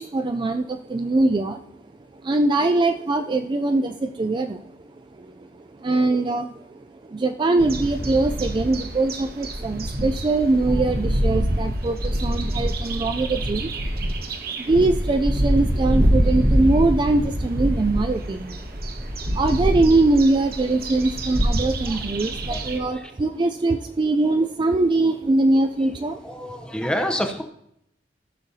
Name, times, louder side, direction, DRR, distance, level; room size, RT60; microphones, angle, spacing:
voice 1, 0.0-1.6 2.1-4.9 5.2-14.0 14.5-26.3, right 2 dB, 25° right, 6 dB, 0.3 m, -22 dB
sound 1, 7.6-22.8, equal, 55° right, 1.1 m, -25 dB
voice 2, 26.2-27.4, equal, 5° left, 5 dB, 0.7 m, -26 dB
15.5 x 6.4 x 2.7 m, 0.75 s
head